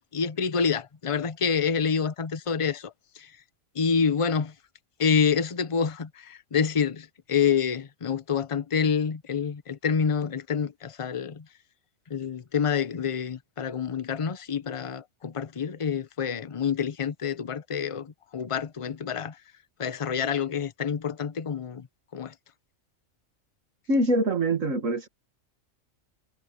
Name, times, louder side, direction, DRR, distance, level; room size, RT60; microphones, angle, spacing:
voice 1, 0.0-3.3 3.8-4.5 5.0-11.4 12.1-19.4 19.8-21.9 22.1-22.3, left 6 dB, 30° left, 0.7 m, -27 dB
voice 2, 23.9-25.1, right 1 dB, 70° right, 2.3 m, -24 dB
omnidirectional pair, 1.4 m